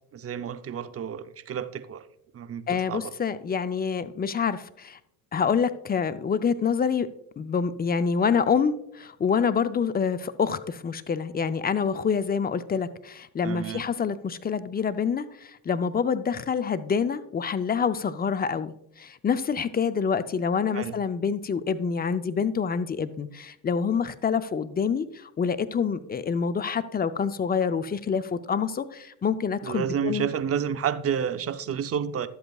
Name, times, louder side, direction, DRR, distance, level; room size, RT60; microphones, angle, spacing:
voice 1, 0.1-2.0 2.3-3.1 13.4-13.8 20.7-20.9 29.6-32.3, right 8 dB, 30° right, 0.6 m, -30 dB
voice 2, 2.7-5.0 5.3-7.1 7.4-30.3, left 6 dB, 20° left, 0.5 m, -27 dB
12.0 x 7.9 x 2.3 m
supercardioid pair, 80°, 46 cm